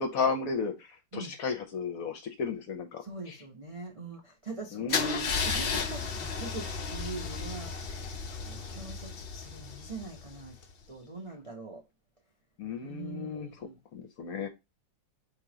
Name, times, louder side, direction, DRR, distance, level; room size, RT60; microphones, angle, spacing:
voice 1, 0.0-3.4 4.7-5.3 12.6-13.5 13.9-14.5, left 5 dB, 60° left, 1.0 m, -34 dB
voice 2, 3.0-7.9 8.3-10.5 10.9-11.8 12.8-13.8, right 3 dB, 45° right, 0.4 m, -43 dB
Car / Engine starting / Idling, 4.9-10.7, left 5 dB, 85° left, 0.5 m, -34 dB
3.7 x 2.9 x 4.8 m
omnidirectional pair, 2.0 m